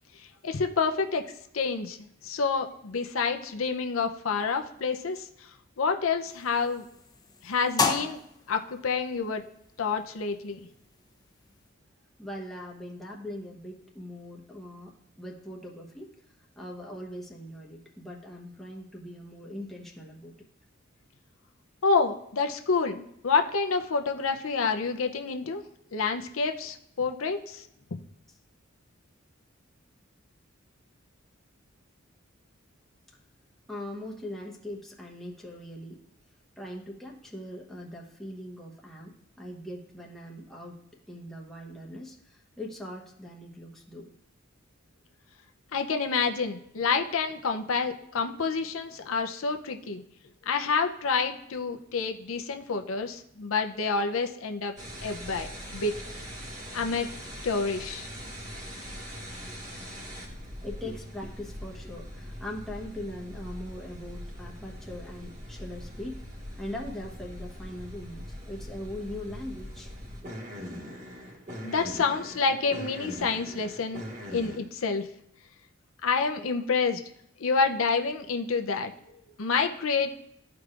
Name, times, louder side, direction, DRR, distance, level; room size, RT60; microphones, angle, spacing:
voice 1, 0.4-5.3 5.8-6.8 7.4-8.2 8.5-9.4 9.8-10.7 21.8-25.6 25.9-28.0 45.7-50.0 50.5-54.7 55.0-55.9 56.7-57.1 57.4-58.1 71.6-74.0 74.3-75.1 76.0-77.0 77.4-78.9 79.4-80.1, left 4 dB, 90° left, 5 dB, 0.6 m, -28 dB
sound 1, 6.2-11.7, left 4 dB, 20° left, 0.6 m, -35 dB
voice 2, 12.2-16.1 16.6-20.3 33.7-36.0 36.6-40.8 41.1-44.1 59.4-59.5 60.6-66.2 66.5-69.9, left 1 dB, ahead, -3 dB, 1.1 m, -41 dB
sound 2, 54.8-74.6, equal, 40° right, 1.9 m, -41 dB
13.5 x 4.7 x 2.5 m, 0.76 s
head